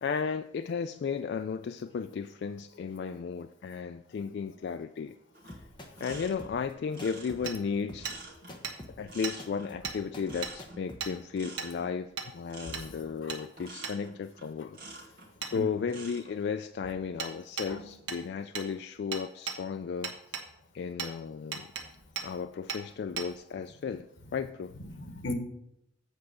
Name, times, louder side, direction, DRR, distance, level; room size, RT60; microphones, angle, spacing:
voice 1, 0.0-5.2 6.0-8.1 9.0-14.8 15.4-20.4 20.7-21.7 22.2-24.1 24.3-24.7, left 6 dB, 60° left, 9 dB, 0.3 m, -34 dB
sound 1, 5.3-15.3 15.8-16.3, right 2 dB, 55° right, 2.0 m, -49 dB
sound 2, 5.5-11.0, left 1 dB, 25° left, 1.1 m, -48 dB
Hammer, 7.5-7.6 8.1-8.2 8.6-8.8 9.2-9.4 9.8-10.0 10.4-10.5 11.0-11.1 11.6-11.7 12.2-12.3 12.7-12.9 13.3-13.4 13.8-14.0 15.4-15.5 17.2-17.3 17.6-17.7 18.1-18.2 18.6-18.7 19.1-19.6 20.0-20.5 21.0-21.1 21.5-21.9 22.2-22.3 22.7-22.8 23.2-23.3, right 6 dB, 80° right, 1.3 m, -36 dB
voice 2, 24.9-25.3, left 2 dB, 90° left, 7 dB, 1.2 m, -37 dB
8.1 x 4.8 x 6.4 m, 0.79 s
head